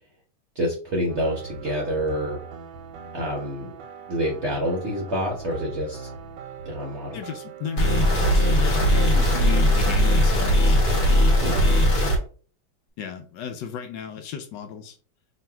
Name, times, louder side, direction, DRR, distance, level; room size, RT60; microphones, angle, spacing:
voice 1, 0.5-2.4 3.1-3.7 4.1-6.1 6.6-7.2 8.5-8.6 11.4-11.7, equal, 60° right, -1 dB, 0.7 m, -27 dB
sound 1, 1.1-11.6, right 5 dB, 75° right, 1.2 m, -39 dB
voice 2, 7.1-10.8 11.5-11.8 13.0-15.0, left 8 dB, 75° left, 6 dB, 1.1 m, -35 dB
sound 2, 7.8-12.2, equal, 60° left, 1.4 m, -19 dB
3.1 x 2.7 x 4.4 m, 0.42 s
omnidirectional pair, 2.1 m